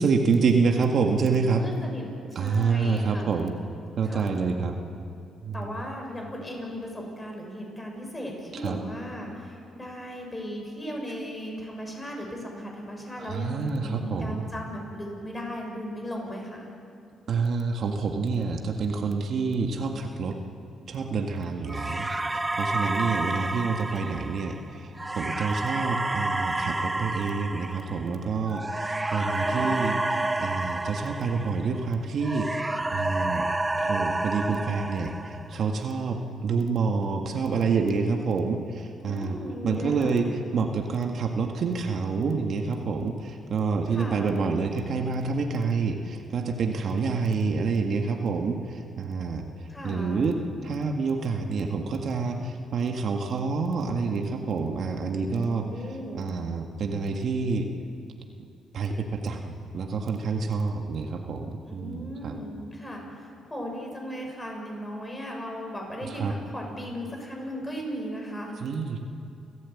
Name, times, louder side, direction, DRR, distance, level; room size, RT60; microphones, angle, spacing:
voice 1, 0.0-1.6 2.4-3.6 4.0-4.8 5.4-5.6 8.6-8.8 13.3-14.4 17.3-20.4 20.9-30.0 30.4-32.6 32.9-33.5 33.8-39.4 39.6-40.3 40.5-49.4 49.8-55.7 56.1-57.7 58.7-62.4 66.2-66.3 68.6-69.0, right 4 dB, 60° right, 3 dB, 1.8 m, -27 dB
voice 2, 1.4-3.3 4.0-4.3 5.5-16.7 29.3-30.0 39.0-40.3 43.9-44.4 49.7-50.3 55.3-56.3 61.6-68.5, equal, 15° left, 1 dB, 6.7 m, -37 dB
sound 1, 21.7-31.9 32.2-35.6, right 2 dB, 15° right, 1.0 m, -30 dB
30.0 x 15.0 x 8.6 m, 2.5 s
cardioid pair, 90°, 0 cm